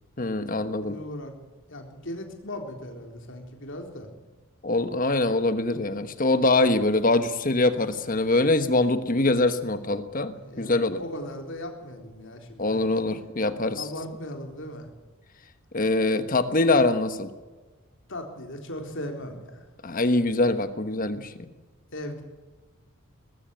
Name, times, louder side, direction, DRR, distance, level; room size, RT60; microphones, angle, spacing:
voice 1, 0.2-1.0 4.6-11.0 12.6-13.9 15.7-17.3 19.8-21.3, left 2 dB, 40° left, 10 dB, 1.2 m, -23 dB
voice 2, 0.8-1.3 1.7-4.1 10.3-13.0 13.8-14.9 18.1-19.7 21.9-22.2, left 1 dB, 60° left, 4 dB, 3.8 m, -38 dB
20.5 x 15.0 x 9.1 m, 1.3 s
head